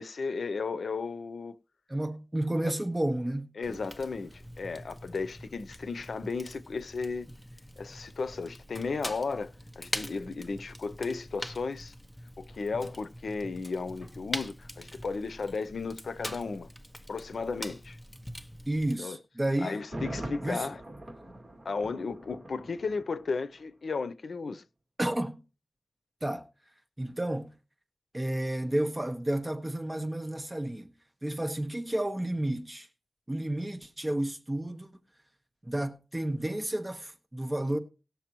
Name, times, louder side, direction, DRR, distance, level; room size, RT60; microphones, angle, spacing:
voice 1, 0.0-1.6 2.6-2.7 3.6-7.3 7.8-11.9 12.4-16.7 17.1-18.0 19.0-19.2 19.6-20.8 21.6-24.6, left 4 dB, 80° left, 0.6 m, -34 dB
voice 2, 1.9-3.5 18.7-19.8 20.4-20.7 25.0-25.4 26.2-26.4 27.0-27.5 28.1-30.9 31.2-32.9 33.3-34.9 35.6-37.8, right 1 dB, 20° right, 1.3 m, -31 dB
Fire, 3.6-19.0, equal, 5° left, 0.9 m, -43 dB
Thunder, 19.7-23.7 23.9-24.0, right 1 dB, 35° right, 2.4 m, -42 dB
18.5 x 6.7 x 3.0 m
wide cardioid pair, 90°, 0 cm